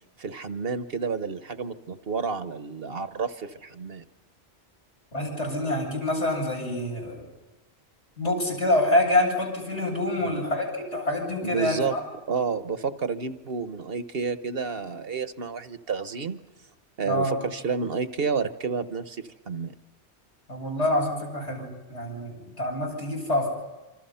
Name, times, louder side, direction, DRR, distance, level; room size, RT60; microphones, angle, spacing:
voice 1, 0.2-4.0 10.2-10.4 11.4-11.9 12.3-16.4 17.0-19.7, right 5 dB, 55° right, 10 dB, 1.3 m, -30 dB
voice 2, 5.1-7.2 8.2-12.0 17.0-17.3 20.5-23.5, left 1 dB, 90° left, 0 dB, 8.3 m, -26 dB
26.5 x 26.0 x 5.7 m, 1.1 s
omnidirectional pair, 1.2 m